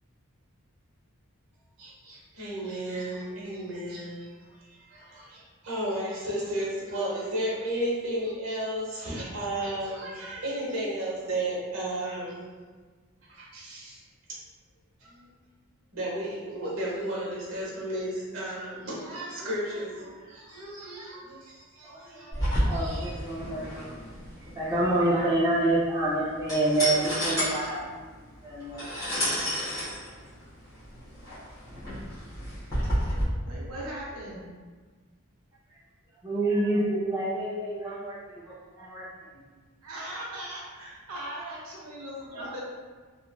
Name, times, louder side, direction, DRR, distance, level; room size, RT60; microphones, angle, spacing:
voice 1, 1.8-4.3 4.6-12.4 13.3-14.0 15.0-15.2 15.9-23.1 42.3-42.5, right 1 dB, 70° right, -5 dB, 1.0 m, -34 dB
sound 1, 22.3-33.2, equal, 15° left, 1.1 m, -31 dB
voice 2, 22.7-23.9 24.4-28.9 35.7-35.8 36.1-39.4, right 2 dB, 15° right, -9 dB, 0.5 m, -28 dB
voice 3, 33.4-34.5 39.8-42.6, right 1 dB, 90° right, -4 dB, 0.6 m, -39 dB
2.9 x 2.5 x 2.2 m, 1.5 s
head